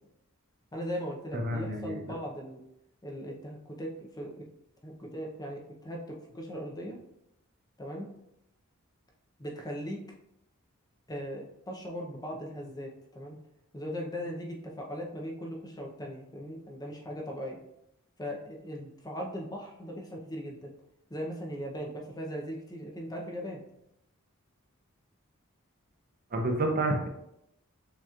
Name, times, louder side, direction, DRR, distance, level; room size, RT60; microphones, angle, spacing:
voice 1, 0.7-2.6 3.0-4.5 4.8-7.0 7.8-8.1 9.4-10.0 11.1-13.4 13.7-17.6 18.2-20.7 21.1-23.6, equal, 15° left, 0 dB, 0.6 m, -39 dB
voice 2, 1.3-2.0 26.3-27.1, right 1 dB, 45° right, 2 dB, 0.7 m, -29 dB
6.7 x 3.0 x 2.4 m, 0.80 s
head